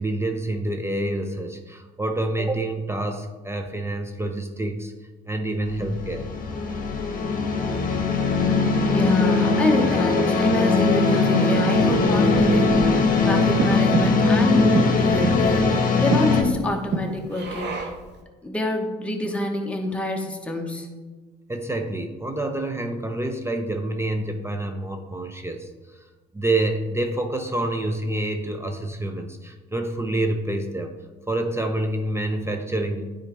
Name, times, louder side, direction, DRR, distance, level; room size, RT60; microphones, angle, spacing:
voice 1, 0.0-4.9 5.3-6.2 21.5-25.7 26.3-30.9 31.3-33.1, right 1 dB, 10° right, 5 dB, 0.7 m, -27 dB
sound 1, 5.7-16.4, left 3 dB, 40° left, 1.1 m, -20 dB
voice 2, 8.9-17.9 18.4-20.9, left 1 dB, 5° left, 1 dB, 1.2 m, -27 dB
Breathing, 9.6-18.1, right 3 dB, 55° right, 1.0 m, -30 dB
9.4 x 3.9 x 3.4 m, 1.3 s
hypercardioid pair, 55°, 21 cm